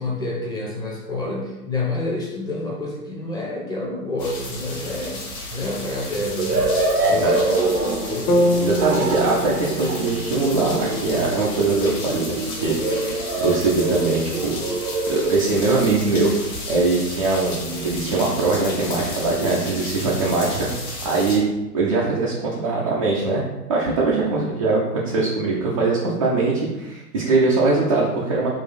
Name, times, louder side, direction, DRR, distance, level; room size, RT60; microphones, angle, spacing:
voice 1, 0.0-5.2 5.5-6.6 7.0-8.6, left 2 dB, 10° left, -3 dB, 0.7 m, -28 dB
sound 1, 4.2-21.4, left 2 dB, 35° left, 1.1 m, -34 dB
sound 2, 6.4-15.8 17.6-20.0, right 3 dB, 85° right, 0.7 m, -26 dB
sound 3, 8.3-12.3, left 1 dB, 70° left, 0.9 m, -26 dB
voice 2, 8.6-14.5 15.1-16.3 16.7-20.7 21.0-21.4 21.7-23.4 23.7-28.5, right 3 dB, 25° right, -5 dB, 0.3 m, -22 dB
3.8 x 2.4 x 4.0 m, 1.0 s
figure-of-eight pair, 110°, 46 cm